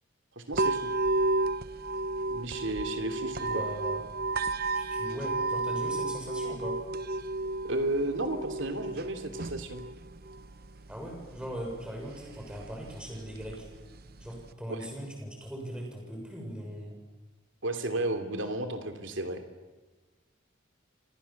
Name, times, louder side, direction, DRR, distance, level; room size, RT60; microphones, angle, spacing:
voice 1, 0.3-0.9 2.3-3.6 7.6-9.8 14.7-14.8 17.6-19.4, right 2 dB, 70° right, 7 dB, 3.1 m, -33 dB
sound 1, 0.5-14.5, right 2 dB, 50° right, 0.9 m, -33 dB
voice 2, 3.5-4.0 4.7-6.8 10.9-13.7 14.2-16.9, equal, 5° right, 0 dB, 6.4 m, -39 dB
29.0 x 26.0 x 7.3 m, 1.2 s
head